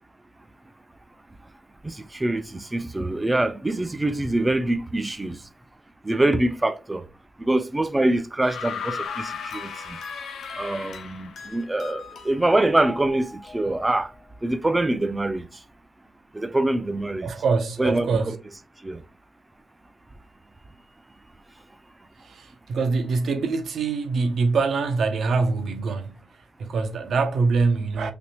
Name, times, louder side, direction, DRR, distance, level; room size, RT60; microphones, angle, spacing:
voice 1, 1.8-5.4 6.0-7.0 7.4-10.0 10.6-13.3 13.5-14.1 14.4-15.4 16.3-17.3 17.8-18.4 18.8-19.0, right 1 dB, 10° right, 0.3 m, -24 dB
sound 1, 8.4-11.5 12.7-12.8, left 6 dB, 90° left, 0.6 m, -35 dB
sound 2, 9.0-14.2, left 3 dB, 60° left, 1.0 m, -43 dB
voice 2, 17.2-18.3 22.2-26.2 26.6-28.1, right 4 dB, 60° right, 0.5 m, -24 dB
3.3 x 2.9 x 2.8 m
wide cardioid pair, 175°, 0 cm